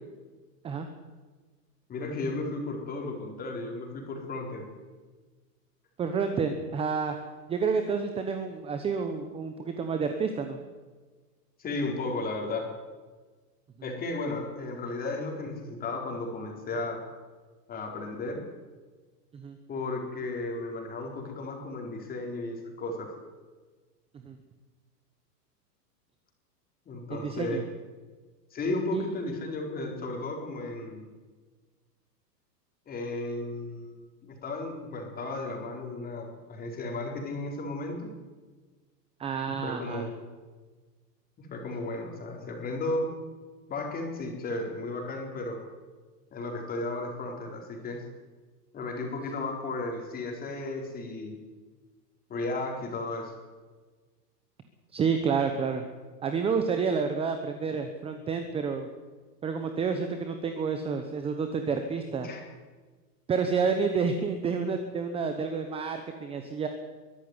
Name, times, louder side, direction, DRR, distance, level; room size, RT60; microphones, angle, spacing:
voice 1, 1.9-4.7 11.6-12.7 13.8-17.0 17.7-18.4 19.7-23.1 26.9-27.6 28.5-31.1 32.9-38.1 39.5-40.1 41.4-43.1 43.7-45.6 46.3-48.0 48.7-51.3 52.3-53.3 62.2-62.4, left 2 dB, 20° left, 2 dB, 4.2 m, -34 dB
voice 2, 6.0-7.1 7.5-10.6 13.8-13.9 19.3-19.6 24.2-24.4 27.1-27.6 28.9-29.1 39.2-40.1 54.9-55.8 56.2-58.9 59.4-62.3 63.3-66.7, right 5 dB, 10° right, 7 dB, 1.0 m, -29 dB
22.5 x 12.0 x 9.7 m, 1.4 s
supercardioid pair, 155°, 49 cm